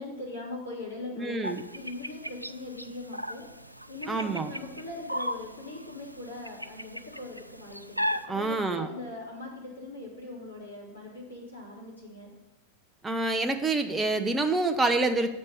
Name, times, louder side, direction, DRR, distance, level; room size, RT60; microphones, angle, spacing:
voice 1, 0.0-1.4 1.7-3.5 3.9-12.3, left 2 dB, 80° left, -5 dB, 3.0 m, -41 dB
voice 2, 1.2-1.6 4.1-4.5 8.3-8.9 13.0-15.3, right 3 dB, 10° right, 6 dB, 0.5 m, -27 dB
sound 1, 1.4-8.3, equal, 90° right, 0.3 m, -37 dB
8.1 x 5.2 x 7.0 m, 1.1 s
figure-of-eight pair, 90°, 0 cm